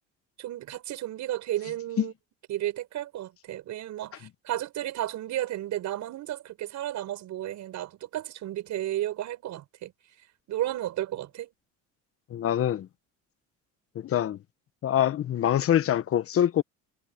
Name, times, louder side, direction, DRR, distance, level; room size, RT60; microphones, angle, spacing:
voice 1, 0.4-2.1 2.5-9.9 10.5-11.5, right 13 dB, 65° right, 5.8 m, -33 dB
voice 2, 12.3-12.9 13.9-14.4 14.8-16.6, left 10 dB, 45° left, 1.0 m, -24 dB
cardioid pair, 105°, 31 cm